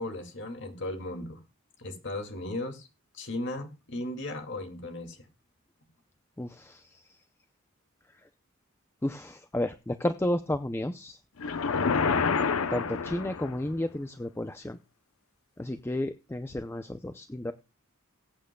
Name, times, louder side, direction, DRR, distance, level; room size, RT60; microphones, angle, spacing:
voice 1, 0.0-1.4 1.8-2.9 3.1-5.2, left 1 dB, 55° left, 4 dB, 2.3 m, -36 dB
voice 2, 6.4-7.2 9.0-11.2 12.7-14.8 15.6-17.5, left 1 dB, 10° left, 9 dB, 0.5 m, -32 dB
sound 1, 11.4-13.7, left 5 dB, 80° left, 0.7 m, -27 dB
20.0 x 9.0 x 2.3 m, 0.28 s
head